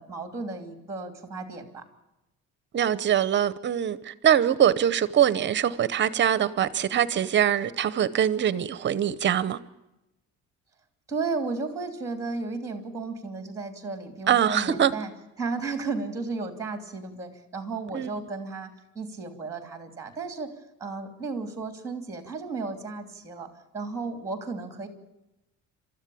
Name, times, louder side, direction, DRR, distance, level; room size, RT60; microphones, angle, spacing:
voice 1, 0.0-1.8 11.1-15.1 15.4-20.5 20.8-24.9, right 4 dB, 10° right, 2.9 m, -34 dB
voice 2, 2.7-9.6 14.3-14.9 17.9-18.1, right 9 dB, 35° right, 0.8 m, -23 dB
28.5 x 13.5 x 8.6 m
cardioid pair, 170°, 30 cm